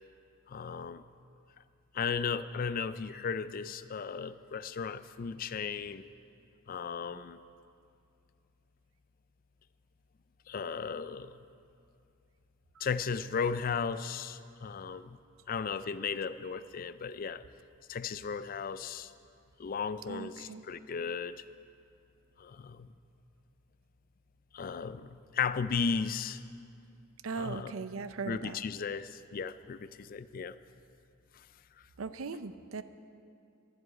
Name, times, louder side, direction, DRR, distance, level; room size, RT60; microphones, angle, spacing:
voice 1, 0.5-1.0 1.9-6.0 6.7-7.4 10.5-11.4 12.8-15.2 15.5-17.4 17.9-19.1 19.6-21.4 22.4-22.9 24.5-26.4 27.4-27.7 28.3-30.6, left 6 dB, 45° left, 14 dB, 0.4 m, -35 dB
voice 2, 20.1-20.7 27.2-28.6 32.0-32.8, right 4 dB, 75° right, 12 dB, 0.6 m, -39 dB
12.0 x 7.8 x 9.6 m, 2.5 s
head